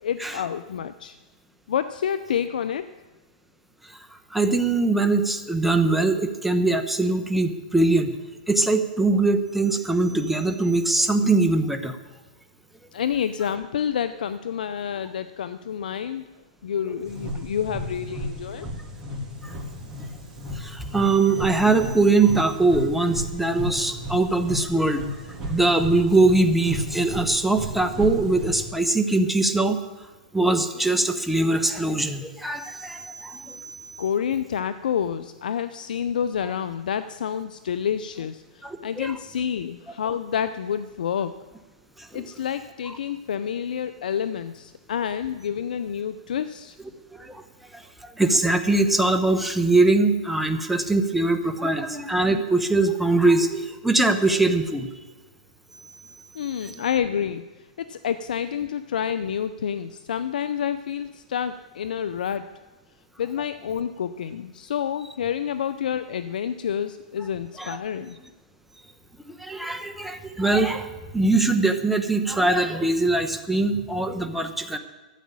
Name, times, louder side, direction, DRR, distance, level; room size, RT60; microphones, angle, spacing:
voice 1, 0.0-1.1 1.7-2.9 12.9-16.2 16.6-18.7 34.0-41.3 42.1-46.8 56.3-57.5 57.8-62.5 63.2-68.2, left 8 dB, 75° left, 12 dB, 0.6 m, -28 dB
voice 2, 4.3-8.1 8.5-12.0 20.6-25.0 25.5-29.8 30.3-33.8 38.6-39.1 42.1-42.3 47.2-47.4 48.2-54.9 67.6-67.8 69.4-70.9 71.1-74.8, right 2 dB, 5° right, 6 dB, 1.1 m, -22 dB
sound 1, 17.1-28.7, equal, 20° right, 3.5 m, -34 dB
13.5 x 7.3 x 8.6 m, 1.2 s
hypercardioid pair, 120°, 5 cm